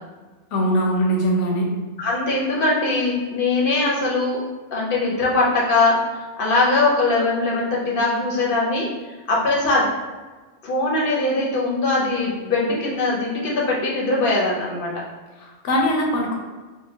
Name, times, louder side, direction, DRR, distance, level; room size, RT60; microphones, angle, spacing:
voice 1, 0.5-1.7 15.4-16.3, equal, 75° left, -1 dB, 1.0 m, -21 dB
voice 2, 2.0-4.4 4.7-6.0 6.4-8.9 9.3-9.9 10.6-14.9, left 2 dB, 50° left, -4 dB, 0.9 m, -21 dB
3.7 x 2.3 x 2.7 m, 1.3 s
omnidirectional pair, 1.3 m